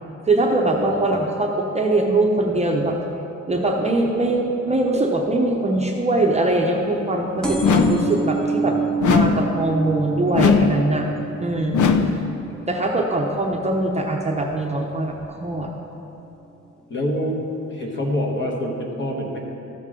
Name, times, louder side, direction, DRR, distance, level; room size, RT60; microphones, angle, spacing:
voice 1, 0.3-3.0 3.5-8.8 9.1-11.1 11.4-12.0 12.7-15.7, right 2 dB, 20° right, 0 dB, 0.6 m, -22 dB
voice 2, 0.9-1.3 11.6-11.7 16.9-17.4 17.7-19.4, equal, 40° left, -1 dB, 1.3 m, -26 dB
sound 1, 7.4-14.7 15.2-15.6 16.5-16.6 16.8-16.9 17.1-17.2, right 4 dB, 5° left, 0.9 m, -29 dB
sound 2, 7.6-8.2 9.0-9.6 10.3-10.9 11.7-12.3, left 5 dB, 90° left, 0.6 m, -18 dB
13.0 x 7.2 x 3.7 m, 2.9 s
wide cardioid pair, 150°, 30 cm